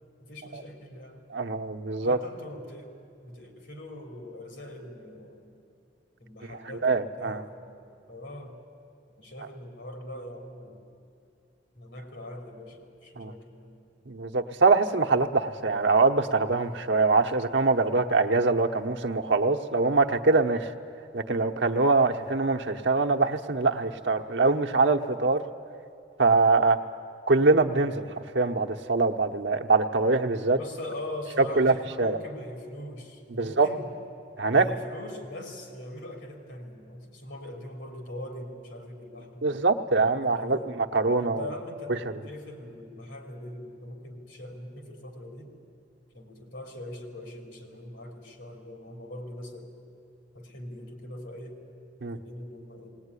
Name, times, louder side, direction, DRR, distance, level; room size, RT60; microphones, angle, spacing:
voice 1, 0.2-1.2 2.0-3.0 3.2-5.6 6.2-7.8 8.1-8.6 9.1-10.8 11.7-13.8 30.5-33.9 34.5-39.6 40.0-40.7 41.2-42.0 42.2-45.5 46.1-49.7 50.3-51.6 52.1-52.9, left 1 dB, 80° left, 3 dB, 3.4 m, -41 dB
voice 2, 1.3-2.2 6.8-7.4 13.2-13.3 14.1-20.7 21.1-25.4 26.2-26.8 27.3-28.0 28.3-30.6 31.6-32.2 33.3-33.7 34.4-34.6 39.4-41.4 52.0-52.2, right 3 dB, 75° right, 4 dB, 1.0 m, -23 dB
19.0 x 18.5 x 9.9 m, 2.6 s
head